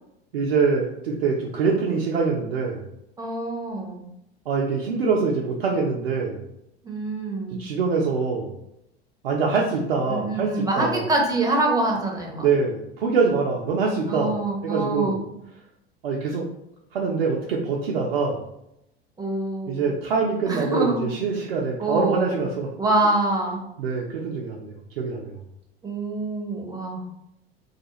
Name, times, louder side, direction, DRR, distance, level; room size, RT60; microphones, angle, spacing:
voice 1, 0.3-2.8 4.5-6.4 7.6-8.6 9.2-11.1 12.4-15.2 16.0-16.5 16.9-18.4 19.7-22.7 23.8-25.3, right 4 dB, 70° right, -2 dB, 0.5 m, -24 dB
voice 2, 3.2-4.0 6.8-7.6 10.1-12.5 14.1-15.2 19.2-19.8 20.5-21.1 21.8-22.4 22.8-23.6 25.8-27.0, right 2 dB, 10° right, -1 dB, 0.6 m, -25 dB
2.3 x 2.2 x 2.9 m, 0.80 s
figure-of-eight pair, 75°, 31 cm